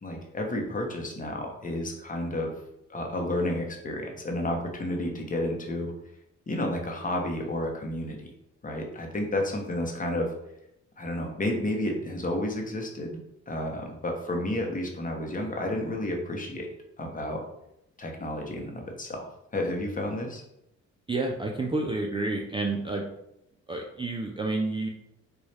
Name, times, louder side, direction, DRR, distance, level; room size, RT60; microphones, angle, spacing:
voice 1, 0.0-2.5 2.9-5.9 6.5-8.2 8.6-10.3 11.0-13.2 13.5-16.7 17.0-17.4 18.0-20.4, left 1 dB, 25° left, 1 dB, 0.8 m, -31 dB
voice 2, 21.1-23.1 23.7-24.9, right 2 dB, 15° right, 0 dB, 0.4 m, -29 dB
4.0 x 2.3 x 3.2 m, 0.82 s
cardioid pair, 90°, 30 cm